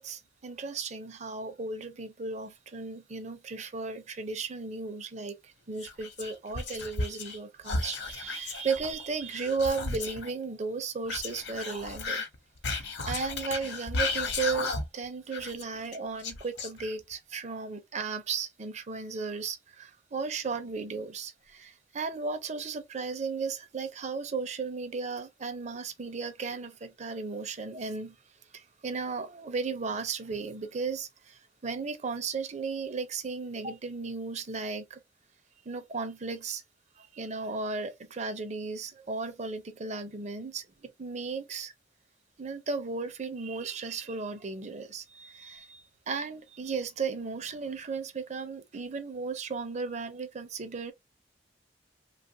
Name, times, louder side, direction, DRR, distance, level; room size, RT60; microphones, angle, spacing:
voice 1, 0.0-12.2 12.7-28.2 28.5-35.0 35.7-36.6 37.0-41.7 42.4-50.9, right 4 dB, 40° right, 0.5 m, -35 dB
Whispering, 5.8-7.4 7.6-10.3 11.1-15.0 15.3-17.1, left 3 dB, 80° left, 0.8 m, -34 dB
2.9 x 2.4 x 2.7 m
head